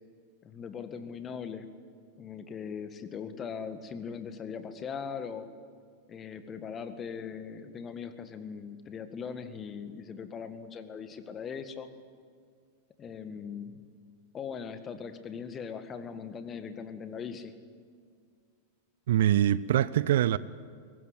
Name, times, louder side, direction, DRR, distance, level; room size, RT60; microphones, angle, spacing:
voice 1, 0.4-1.7 2.2-5.5 6.1-11.9 13.0-13.8 14.3-17.5, left 6 dB, 25° left, 1.9 m, -40 dB
voice 2, 19.1-20.4, right 11 dB, 55° right, 0.6 m, -24 dB
23.0 x 19.0 x 9.6 m
figure-of-eight pair, 90°, 0 cm